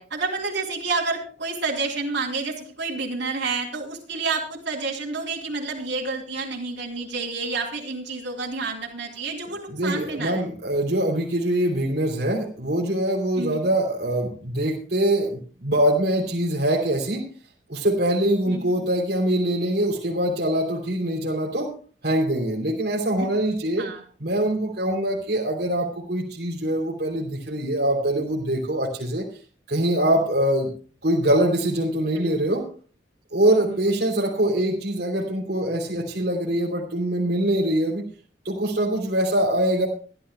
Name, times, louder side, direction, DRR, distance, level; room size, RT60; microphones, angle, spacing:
voice 1, 0.0-10.5 13.4-13.7 18.5-18.7 23.8-24.0 32.1-32.3 33.5-33.6, right 3 dB, 80° right, -3 dB, 3.1 m, -29 dB
voice 2, 9.7-17.2 17.7-21.7 22.0-23.9 24.2-29.2 29.7-30.7 31.0-32.6 33.3-38.0 38.4-39.9, right 1 dB, 60° right, -2 dB, 3.2 m, -23 dB
25.5 x 11.5 x 2.3 m, 0.40 s
head